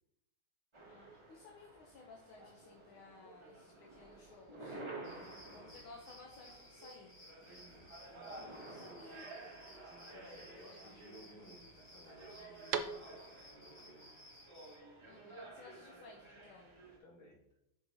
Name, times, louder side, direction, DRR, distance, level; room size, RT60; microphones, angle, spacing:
sound 1, 0.7-17.0, right 2 dB, 35° right, 0.4 m, -53 dB
voice 1, 0.8-4.8 5.5-7.2 8.6-9.3 15.0-16.7, left 3 dB, 80° left, -1 dB, 1.7 m, -57 dB
sound 2, 5.0-14.8, left 1 dB, 20° left, 1.2 m, -59 dB
sound 3, 5.0-13.5, right 7 dB, 75° right, 1.3 m, -49 dB
voice 2, 5.1-5.8 7.4-9.0 9.7-14.1 17.0-17.6, equal, 50° left, -5 dB, 2.8 m, -59 dB
7.6 x 5.8 x 2.8 m, 0.83 s
omnidirectional pair, 2.3 m